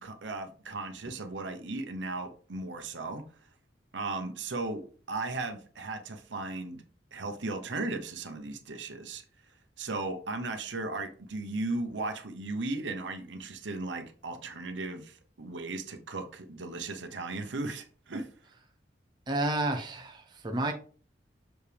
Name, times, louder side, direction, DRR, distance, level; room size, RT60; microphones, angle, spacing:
voice 1, 0.0-3.2 3.9-6.8 7.1-9.2 9.8-18.3, right 2 dB, 85° right, 6 dB, 0.9 m, -36 dB
voice 2, 19.3-20.7, right 2 dB, 25° right, 3 dB, 0.7 m, -30 dB
6.5 x 4.8 x 3.4 m, 0.42 s
head